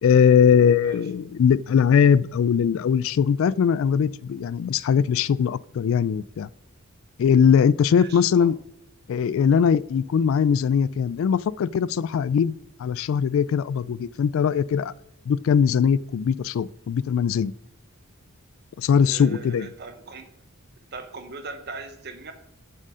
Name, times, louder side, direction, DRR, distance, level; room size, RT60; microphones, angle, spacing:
voice 1, 0.0-6.5 7.2-8.5 9.1-14.9 15.3-17.5 18.8-19.7, left 7 dB, 65° left, 20 dB, 0.3 m, -20 dB
voice 2, 7.9-8.5 19.0-20.3 20.9-22.3, right 4 dB, 50° right, 7 dB, 1.0 m, -39 dB
7.4 x 6.6 x 5.0 m, 0.77 s
head